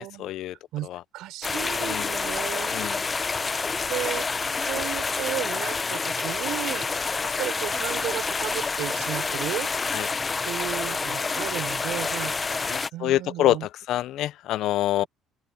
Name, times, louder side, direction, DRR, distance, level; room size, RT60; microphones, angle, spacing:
voice 1, 0.0-0.6 0.8-1.0 1.7-2.1 2.7-3.0 9.9-10.1 12.7-15.0, left 13 dB, 60° left, 0.4 m, -26 dB
voice 2, 1.1-2.7 3.9-4.3 4.6-6.9 7.2-9.7 10.4-12.3 12.9-13.7 15.0-15.1, right 15 dB, 70° right, 4.5 m, -34 dB
sound 1, 1.4-12.9, left 4 dB, 20° left, 0.6 m, -28 dB
open air
cardioid pair, 175°, 0 cm